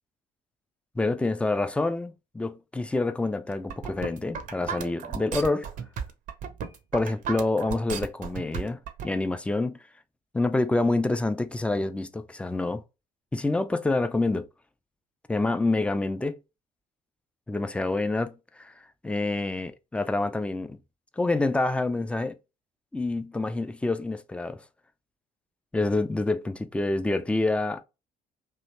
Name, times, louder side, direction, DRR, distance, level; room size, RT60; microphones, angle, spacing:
voice 1, 1.0-5.7 6.9-9.8 10.3-12.8 13.3-14.5 15.3-16.4 17.5-18.7 19.0-20.8 21.2-22.4 22.9-24.6 25.7-27.8, left 2 dB, 5° left, 0.3 m, -27 dB
sound 1, 3.5-9.1, right 7 dB, 45° right, 0.5 m, -34 dB
2.8 x 2.0 x 4.0 m
figure-of-eight pair, 50°, 19 cm